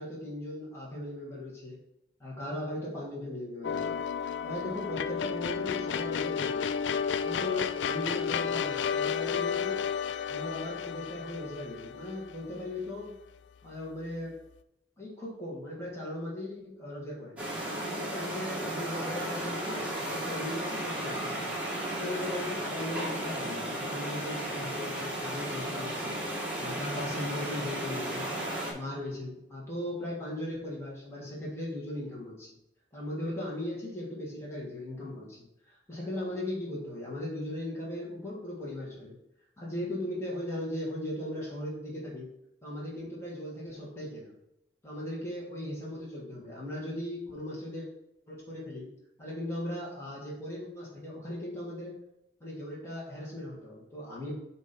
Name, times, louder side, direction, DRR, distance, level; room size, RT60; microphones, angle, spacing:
voice 1, 0.0-1.8 2.2-4.0 4.4-6.7 7.2-9.8 10.3-13.2 13.6-14.4 15.0-17.4 17.8-21.5 21.9-26.2 26.6-28.3 28.7-32.5 32.9-35.4 35.6-39.1 39.6-42.3 42.6-44.3 44.8-47.9 48.3-48.9 49.2-52.0 52.4-54.3, left 1 dB, 15° left, -7 dB, 1.9 m, -38 dB
sound 1, 3.6-12.9, left 7 dB, 80° left, 0.4 m, -32 dB
sound 2, 17.4-28.7, right 1 dB, 5° right, 1.5 m, -34 dB
7.8 x 3.0 x 5.4 m, 0.83 s
head